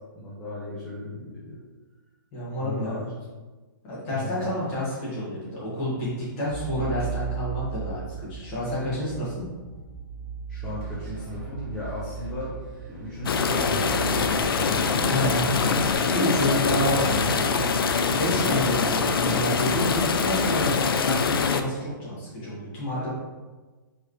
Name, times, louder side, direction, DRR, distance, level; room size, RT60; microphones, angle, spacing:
voice 1, 0.2-1.6 2.6-3.0 4.1-4.5 10.5-12.6 13.0-15.3 16.3-17.4 18.3-18.6, left 1 dB, 5° left, -10 dB, 0.3 m, -35 dB
voice 2, 2.3-3.1 3.8-9.5 15.0-17.6 17.8-23.1, equal, 20° left, -8 dB, 1.5 m, -29 dB
sound 1, 6.5-20.9, right 6 dB, 50° right, 1.4 m, -38 dB
sound 2, 10.6-19.4, equal, 35° right, 1.2 m, -46 dB
sound 3, 13.3-21.6, left 5 dB, 80° left, 0.4 m, -24 dB
4.7 x 3.2 x 3.1 m, 1.3 s
hypercardioid pair, 175°, 12 cm